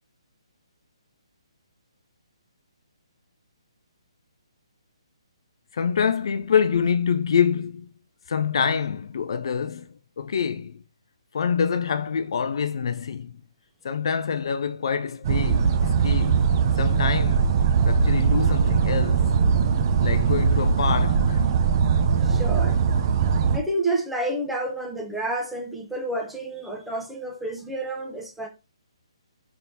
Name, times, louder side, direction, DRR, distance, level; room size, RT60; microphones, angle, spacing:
voice 1, 5.7-7.9 8.3-10.8 11.3-13.4 13.8-16.5 16.8-17.5 17.8-19.4 20.0-21.4, left 7 dB, 60° left, 0.3 m, -26 dB
sound 1, 15.2-23.6, right 6 dB, 40° right, 0.6 m, -21 dB
voice 2, 22.2-22.8 23.5-28.5, right 1 dB, 5° right, 0.7 m, -29 dB
4.1 x 3.4 x 2.7 m
figure-of-eight pair, 140°, 3 cm